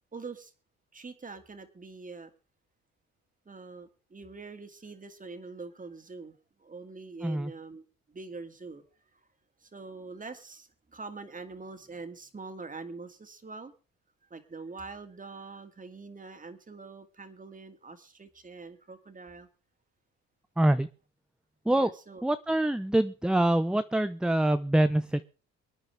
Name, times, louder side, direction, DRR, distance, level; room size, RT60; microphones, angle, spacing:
voice 1, 0.1-0.5 0.9-2.3 3.5-8.8 9.1-9.2 9.6-13.7 14.3-19.5 21.7-22.2, right 4 dB, 25° right, 7 dB, 2.3 m, -44 dB
voice 2, 7.2-7.5 20.6-20.9 21.6-21.9 22.2-25.2, right 1 dB, 5° right, 11 dB, 0.6 m, -25 dB
25.0 x 9.7 x 3.4 m, 0.35 s
cardioid pair, 90°, 30 cm